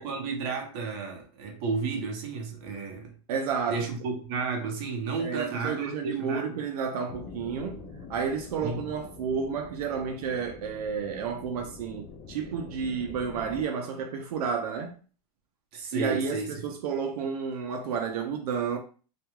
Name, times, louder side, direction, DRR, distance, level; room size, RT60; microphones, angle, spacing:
voice 1, 0.0-3.1 3.7-6.6 8.6-8.8 15.7-16.5, right 4 dB, 45° right, 0.7 m, -32 dB
voice 2, 3.3-3.8 5.2-7.8 8.1-15.0 15.9-18.8, right 6 dB, 80° right, 0.5 m, -31 dB
sound 1, 7.1-13.6, left 4 dB, 30° left, 0.4 m, -45 dB
2.4 x 2.2 x 3.0 m
supercardioid pair, 160°, 19 cm